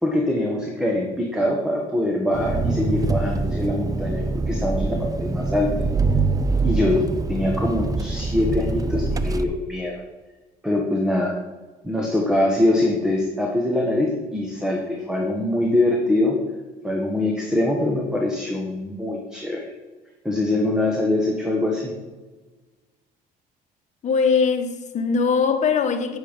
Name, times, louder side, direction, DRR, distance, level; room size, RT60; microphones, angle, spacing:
voice 1, 0.0-5.9 6.6-7.0 7.3-10.0 10.6-11.4 11.8-16.4 16.8-19.7 20.2-21.9, left 1 dB, 5° right, 1.4 m, -23 dB
Engine, 2.3-9.4, right 3 dB, 20° right, 0.6 m, -24 dB
voice 2, 24.0-26.2, left 5 dB, 45° left, 1.3 m, -21 dB
9.0 x 7.4 x 5.3 m
cardioid pair, 110°, 17 cm